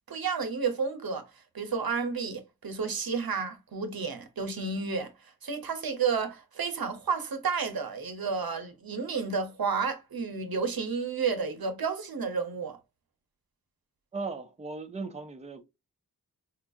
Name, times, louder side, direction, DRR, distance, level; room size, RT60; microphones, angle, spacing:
voice 1, 0.1-1.3 1.5-5.1 5.4-12.8, right 5 dB, 75° right, 0.7 m, -31 dB
voice 2, 14.1-15.6, right 3 dB, 20° right, 0.5 m, -37 dB
4.5 x 2.3 x 2.5 m
wide cardioid pair, 65°, 36 cm